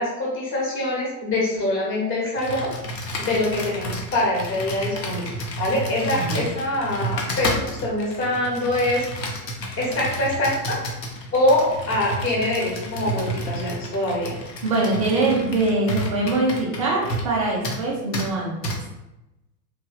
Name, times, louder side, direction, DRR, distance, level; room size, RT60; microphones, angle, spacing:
voice 1, 0.0-2.7 3.2-5.3 5.6-9.0 9.8-10.8 11.3-14.4, left 1 dB, 25° left, -4 dB, 1.0 m, -24 dB
Computer keyboard, 2.4-17.4 17.6-17.8 18.1-18.3 18.6-18.8, equal, 80° left, 0.8 m, -31 dB
voice 2, 14.6-18.7, right 2 dB, 25° right, -3 dB, 0.3 m, -23 dB
2.9 x 2.6 x 2.3 m, 0.95 s
figure-of-eight pair, 95°, 50 cm